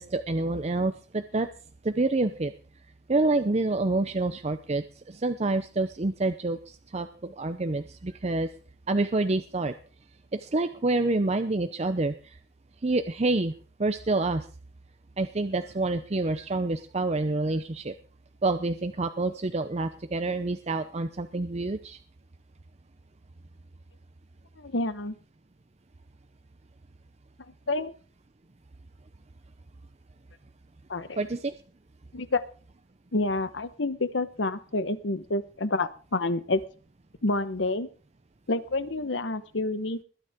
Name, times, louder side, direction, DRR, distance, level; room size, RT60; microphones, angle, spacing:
voice 1, 0.0-1.5 1.8-2.5 3.1-8.5 8.9-9.8 10.3-12.4 12.8-13.5 13.8-14.5 15.2-17.9 18.4-22.0 31.2-31.5, right 2 dB, 35° right, 9 dB, 0.6 m, -27 dB
voice 2, 24.6-25.2 27.7-27.9 30.9-31.2 32.1-32.4 33.1-36.6 37.2-37.9 38.5-40.0, left 2 dB, 75° left, 13 dB, 1.1 m, -28 dB
21.5 x 9.4 x 3.6 m, 0.39 s
head